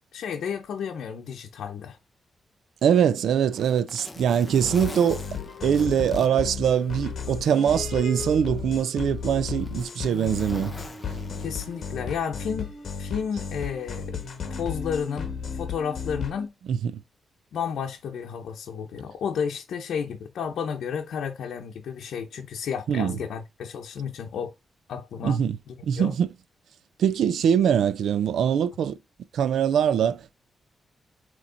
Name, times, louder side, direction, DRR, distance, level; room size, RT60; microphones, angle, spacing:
voice 1, 0.1-2.0 11.4-12.7 13.0-14.2 14.5-16.5 17.5-24.5 24.9-25.4 25.7-26.1, left 7 dB, 80° left, 0.8 m, -32 dB
Zipper (clothing), 2.8-7.3 7.7-7.8 8.6-12.0 13.2-13.4, left 2 dB, 10° left, 0.8 m, -45 dB
voice 2, 2.8-5.2 5.6-10.7 16.7-17.0 22.9-23.2 25.2-25.6 25.8-26.3 27.0-29.0 29.3-30.3, right 8 dB, 80° right, 0.5 m, -23 dB
sound 1, 4.6-16.5, left 6 dB, 45° left, 1.5 m, -34 dB
8.2 x 3.1 x 3.8 m
wide cardioid pair, 175°, 0 cm